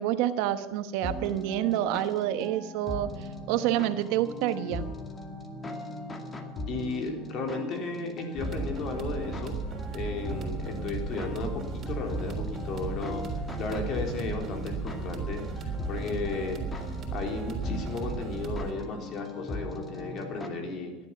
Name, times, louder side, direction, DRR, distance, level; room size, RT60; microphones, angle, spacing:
voice 1, 0.0-4.9, right 12 dB, 70° right, 11 dB, 1.1 m, -28 dB
sound 1, 1.0-20.5, left 1 dB, 20° left, 2.2 m, -39 dB
voice 2, 6.7-9.6 9.9-15.4 15.9-16.8 17.1-20.9, left 3 dB, 50° left, 3 dB, 3.7 m, -34 dB
sound 2, 8.4-18.7, right 4 dB, 35° right, 3.5 m, -35 dB
17.0 x 11.0 x 5.9 m, 1.2 s
supercardioid pair, 120°, 0 cm